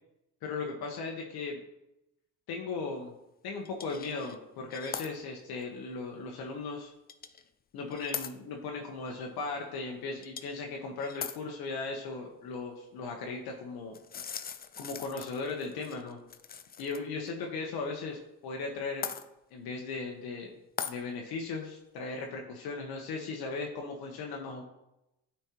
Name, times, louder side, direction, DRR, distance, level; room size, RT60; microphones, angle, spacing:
voice 1, 0.4-1.6 2.5-3.1 3.4-6.9 7.7-13.9 14.8-16.2 16.8-19.1 19.5-20.5 20.8-24.6, left 4 dB, 80° left, 1 dB, 1.0 m, -37 dB
sound 1, 3.6-4.4 4.7-5.1 5.6-5.7 7.1-7.4 7.9-8.3 10.2-10.6 11.0-11.4 13.9-17.0 17.3-17.4 19.0-19.2 20.8-21.0, left 7 dB, 25° left, 0.4 m, -40 dB
9.0 x 4.4 x 2.9 m, 0.89 s
cardioid pair, 80°, 37 cm